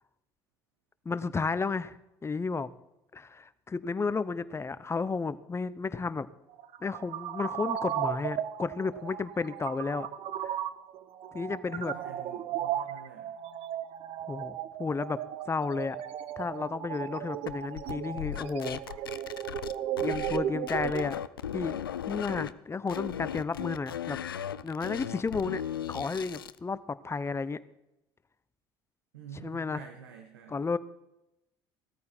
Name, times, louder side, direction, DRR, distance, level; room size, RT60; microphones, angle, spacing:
voice 1, 1.0-2.0 2.2-2.7 3.1-6.3 6.8-10.1 10.4-10.6 11.3-12.0 14.3-15.2 15.5-16.0 16.4-19.0 20.0-21.2 21.5-21.8 22.1-24.2 24.6-25.6 25.9-27.6 29.4-29.8 30.5-30.8, left 4 dB, 20° left, 16 dB, 0.8 m, -32 dB
sound 1, 6.5-21.0, right 11 dB, 55° right, 0.8 m, -36 dB
voice 2, 11.9-13.3 29.1-30.6, right 7 dB, 80° right, 4 dB, 1.3 m, -48 dB
sound 2, 17.5-20.4 20.7-22.5 22.9-26.6, left 10 dB, 90° left, 0.4 m, -37 dB
17.5 x 13.5 x 4.4 m, 0.92 s
hypercardioid pair, 60°, 12 cm